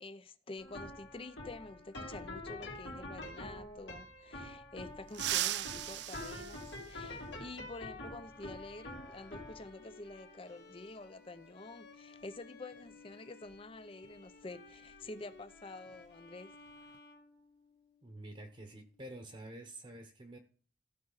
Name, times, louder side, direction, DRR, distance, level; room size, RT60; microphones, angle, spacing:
voice 1, 0.0-16.5, left 2 dB, 30° left, 0.6 m, -48 dB
sound 1, 0.6-17.8, left 2 dB, 80° left, 2.5 m, -49 dB
sound 2, 5.1-7.5 9.1-9.2 10.5-10.6 12.2-12.4 12.7-12.9 13.4-15.6 15.9-16.1 16.5-17.0, right 13 dB, 70° right, 0.4 m, -40 dB
Bowed string instrument, 8.2-18.0, left 3 dB, 60° left, 1.2 m, -59 dB
voice 2, 18.0-20.4, right 1 dB, 30° right, 1.0 m, -48 dB
15.0 x 5.2 x 4.0 m
head